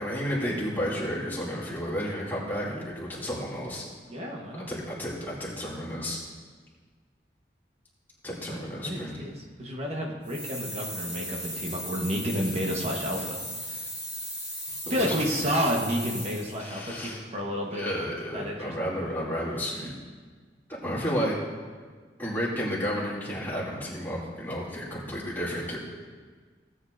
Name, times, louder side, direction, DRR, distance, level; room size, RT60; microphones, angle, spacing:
voice 1, 0.0-3.8 4.7-6.2 8.2-9.2 14.8-15.1 16.6-17.2 17.7-20.0 20.8-21.4 22.2-25.8, equal, 10° left, -7 dB, 2.5 m, -32 dB
voice 2, 4.0-4.7 8.5-13.4 13.6-13.8 14.9-17.9 18.3-18.7, equal, 35° right, 0 dB, 1.2 m, -30 dB
sound 1, 10.2-16.7, equal, 20° right, 3.0 m, -37 dB
17.0 x 8.2 x 2.6 m, 1.5 s
head